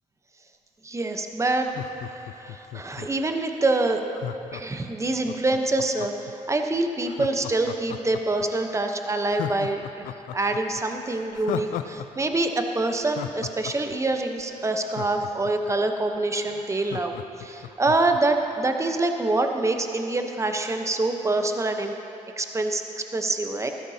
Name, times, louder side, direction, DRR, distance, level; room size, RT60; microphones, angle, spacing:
voice 1, 0.8-1.7 2.1-4.0 4.5-22.0 22.4-23.7, right 2 dB, 20° right, 5 dB, 1.0 m, -26 dB
Laughter, 1.6-3.3 4.1-6.3 7.1-8.5 8.8-8.9 9.3-12.1 12.3-12.4 12.8-15.7 16.1-16.2 16.5-18.2 18.6-18.7, left 11 dB, 80° left, 0.4 m, -36 dB
14.0 x 13.0 x 2.9 m, 2.8 s
supercardioid pair, 60°, 14 cm